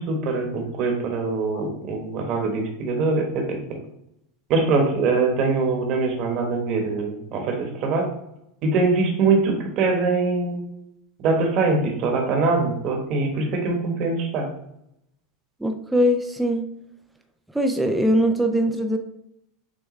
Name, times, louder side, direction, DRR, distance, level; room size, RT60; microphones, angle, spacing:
voice 1, 0.0-3.8 4.5-8.1 8.6-10.6 11.2-14.5, right 3 dB, 50° right, 2 dB, 1.2 m, -23 dB
voice 2, 15.6-16.6 17.5-19.0, equal, 5° right, 5 dB, 0.4 m, -21 dB
6.4 x 2.2 x 3.1 m, 0.79 s
supercardioid pair, 115°, 0 cm